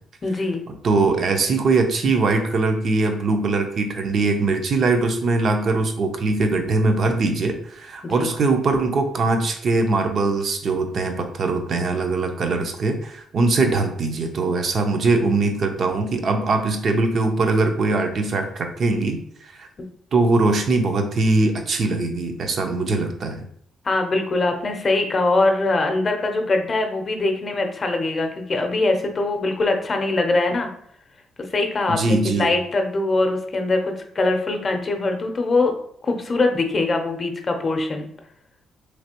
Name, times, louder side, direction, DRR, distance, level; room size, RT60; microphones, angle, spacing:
voice 1, 0.2-0.6 8.0-8.3 23.8-30.7 31.5-35.7 36.0-38.1, left 2 dB, 35° left, 4 dB, 0.6 m, -22 dB
voice 2, 0.8-19.2 19.6-19.7 20.1-23.4 31.9-32.5, right 3 dB, 55° right, 5 dB, 0.6 m, -21 dB
3.2 x 2.9 x 2.9 m, 0.64 s
cardioid pair, 90°, 0 cm